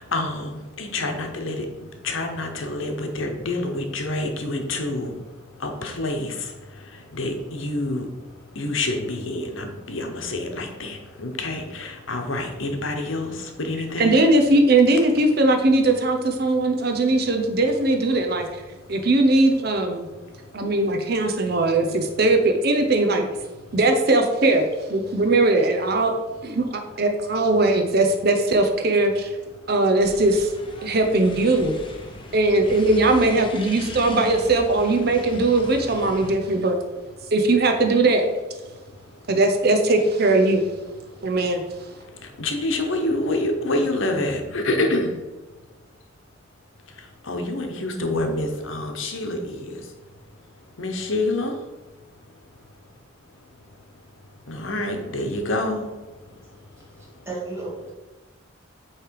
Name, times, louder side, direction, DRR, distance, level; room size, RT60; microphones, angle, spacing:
voice 1, 0.1-1.6 2.0-5.1 5.6-6.3 7.1-8.1 8.6-13.3 13.6-14.2 42.4-45.1 47.3-49.4 50.8-51.5 54.5-55.9, left 2 dB, 70° left, 4 dB, 1.0 m, -27 dB
voice 2, 14.0-18.6 18.9-20.1 20.5-23.2 23.7-26.1 26.4-29.3 29.7-30.5 30.8-31.7 32.3-36.8 37.3-38.3 39.3-40.6 41.2-41.6, right 2 dB, 50° right, 5 dB, 0.6 m, -20 dB
sound 1, 30.0-36.4, left 2 dB, 25° left, 0.7 m, -38 dB
voice 3, 57.0-57.9, right 3 dB, 15° right, -6 dB, 1.9 m, -34 dB
8.4 x 3.2 x 4.6 m, 1.2 s
head